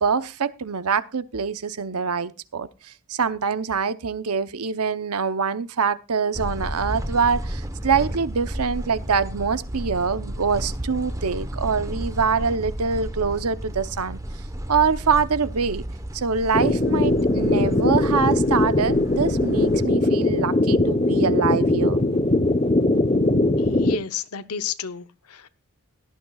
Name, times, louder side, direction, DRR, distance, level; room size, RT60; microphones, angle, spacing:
voice 1, 0.0-14.2 14.7-15.8 16.1-22.0, right 5 dB, 85° right, 0.8 m, -24 dB
sound 1, 6.3-19.9, right 1 dB, 15° right, 1.0 m, -33 dB
sound 2, 16.5-23.9, left 2 dB, 25° left, 0.9 m, -20 dB
voice 2, 23.6-25.5, left 7 dB, 85° left, 0.8 m, -32 dB
17.5 x 12.5 x 2.4 m
head